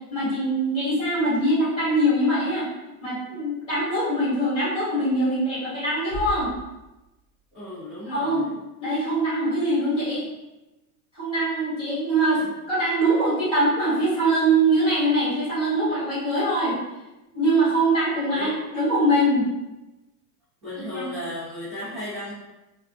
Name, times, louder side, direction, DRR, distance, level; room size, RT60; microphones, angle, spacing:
voice 1, 0.1-2.7 3.0-6.5 8.1-8.5 8.8-10.3 11.1-12.4 12.7-16.8 17.3-19.5 20.9-21.0, right 1 dB, 10° left, -12 dB, 1.2 m, -23 dB
Bass drum, 6.1-7.8, right 2 dB, 30° left, 0.4 m, -38 dB
voice 2, 7.5-8.5 12.3-12.5 18.3-18.6 20.6-22.3, left 1 dB, 15° right, -14 dB, 0.6 m, -35 dB
2.5 x 2.2 x 2.3 m, 1.0 s
supercardioid pair, 155°, 46 cm